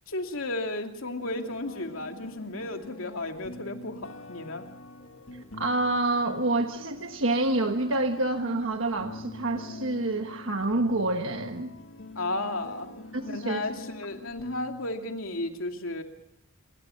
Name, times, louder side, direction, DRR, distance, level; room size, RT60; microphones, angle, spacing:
voice 1, 0.1-4.7 12.2-12.9 13.2-16.0, left 2 dB, 90° left, 4 dB, 2.7 m, -34 dB
sound 1, 1.2-14.9, left 1 dB, 70° left, 1.9 m, -45 dB
sound 2, 5.0-10.9, equal, 25° left, 7.9 m, -56 dB
voice 2, 5.6-11.7 13.1-13.6, right 2 dB, 75° right, 5 dB, 1.3 m, -27 dB
28.0 x 23.0 x 5.8 m, 0.75 s
head